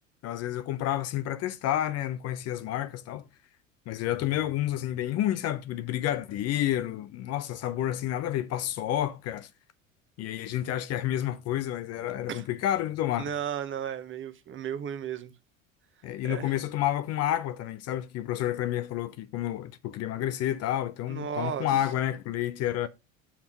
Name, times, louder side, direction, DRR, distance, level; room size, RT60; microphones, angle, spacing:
voice 1, 0.2-3.2 3.9-9.5 10.2-13.3 16.0-22.9, left 12 dB, 40° left, 0.6 m, -30 dB
voice 2, 13.2-15.3 16.2-16.5 21.1-21.7, right 8 dB, 30° right, 0.9 m, -34 dB
7.2 x 3.5 x 5.8 m
figure-of-eight pair, 70°, 40 cm